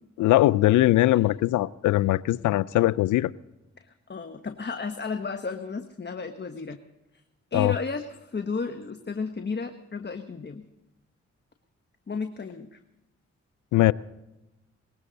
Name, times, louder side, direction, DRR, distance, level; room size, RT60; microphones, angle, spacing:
voice 1, 0.2-3.3 7.5-7.7 13.7-13.9, left 16 dB, 90° left, 0.4 m, -21 dB
voice 2, 3.8-6.8 7.1-7.2 7.5-10.6 12.1-12.8, left 4 dB, 35° left, 1.2 m, -33 dB
20.0 x 16.5 x 4.0 m
supercardioid pair, 50°, 29 cm